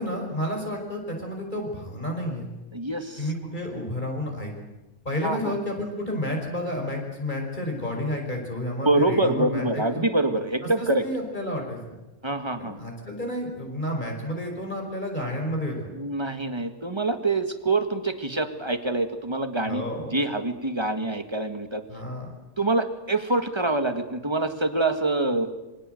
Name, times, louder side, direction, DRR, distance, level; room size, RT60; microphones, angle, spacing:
voice 1, 0.0-2.5 3.2-4.5 5.1-10.0 10.6-12.0 12.6-15.9 19.7-20.1 21.9-22.3, left 1 dB, 40° left, 1 dB, 5.4 m, -31 dB
voice 2, 2.7-3.3 5.2-5.6 8.8-11.0 12.2-12.8 15.9-19.8 20.1-21.8 22.6-25.5, right 2 dB, 20° right, 8 dB, 1.9 m, -25 dB
27.5 x 24.0 x 7.9 m, 1.1 s
omnidirectional pair, 1.3 m